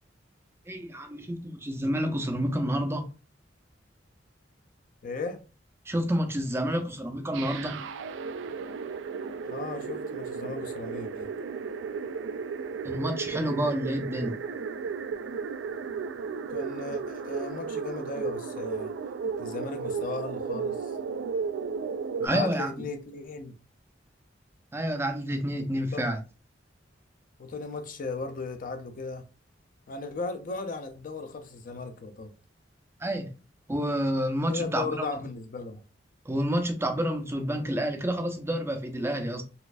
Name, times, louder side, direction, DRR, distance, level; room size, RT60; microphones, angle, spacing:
voice 1, 0.7-3.1 5.9-7.8 12.8-14.4 22.2-22.7 24.7-26.2 33.0-33.3 33.7-35.1 36.3-39.4, equal, 15° right, 0.5 m, -29 dB
voice 2, 5.0-5.4 9.5-11.3 16.5-18.9 19.4-20.9 22.2-23.6 25.9-26.1 27.4-29.3 29.9-32.3 34.5-35.8, left 3 dB, 45° left, 0.5 m, -36 dB
sound 1, 7.3-22.3, right 5 dB, 75° right, 0.3 m, -34 dB
4.0 x 2.5 x 2.4 m
head